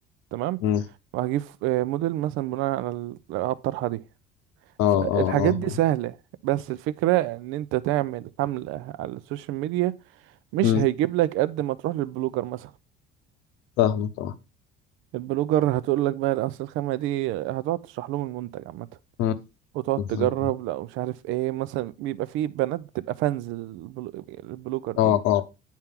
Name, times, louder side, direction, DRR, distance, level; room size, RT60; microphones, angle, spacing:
voice 1, 1.1-4.0 4.9-6.2 6.4-9.9 10.5-12.7 15.1-18.9 19.7-25.2, right 15 dB, 75° right, 0.6 m, -27 dB
voice 2, 4.8-5.5 10.6-10.8 13.8-14.3 19.2-19.3 20.0-20.3 25.0-25.5, left 11 dB, 85° left, 0.9 m, -22 dB
9.4 x 4.5 x 3.7 m
cardioid pair, 165°, 21 cm